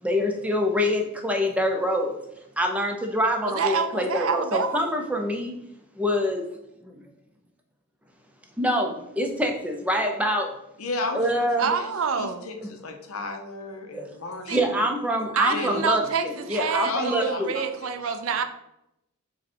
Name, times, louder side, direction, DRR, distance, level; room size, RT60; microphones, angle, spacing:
voice 1, 0.0-2.1 2.6-5.6 6.0-6.4 6.8-7.1 8.6-10.5 11.1-11.7 13.9-14.1 14.5-17.5, equal, 5° right, 2 dB, 0.5 m, -25 dB
voice 2, 3.4-4.9 11.6-12.5 14.5-14.6 15.4-18.4, right 5 dB, 65° right, 8 dB, 0.4 m, -27 dB
voice 3, 10.8-11.9 12.1-14.7 15.5-15.9 16.8-18.2, left 2 dB, 70° left, 4 dB, 0.7 m, -34 dB
4.9 x 2.2 x 4.4 m, 0.81 s
head